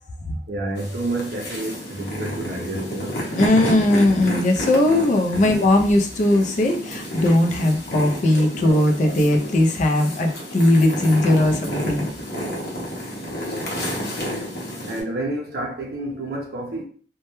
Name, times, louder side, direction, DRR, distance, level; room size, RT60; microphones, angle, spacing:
voice 1, 0.3-3.2 5.3-5.5 14.9-16.8, right 1 dB, 60° right, 0.5 m, -29 dB
sound 1, 0.8-15.0, equal, 60° left, 0.7 m, -31 dB
voice 2, 3.4-12.0, left 1 dB, 45° left, 0.4 m, -19 dB
2.2 x 2.0 x 2.9 m
head